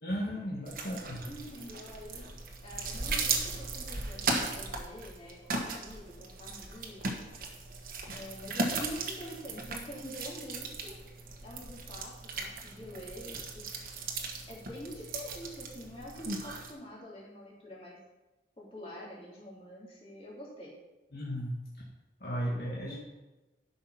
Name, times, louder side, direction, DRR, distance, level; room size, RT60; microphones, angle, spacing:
voice 1, 0.0-1.3 21.1-21.5 22.2-23.0, equal, 60° left, -4 dB, 1.8 m, -35 dB
sound 1, 0.7-16.7, right 3 dB, 55° right, 1.4 m, -37 dB
voice 2, 1.3-2.3 2.6-7.3 8.1-10.9 11.4-13.6 14.5-18.0 18.6-20.8, left 1 dB, 35° left, -5 dB, 3.2 m, -46 dB
11.5 x 5.7 x 5.8 m, 1.1 s
head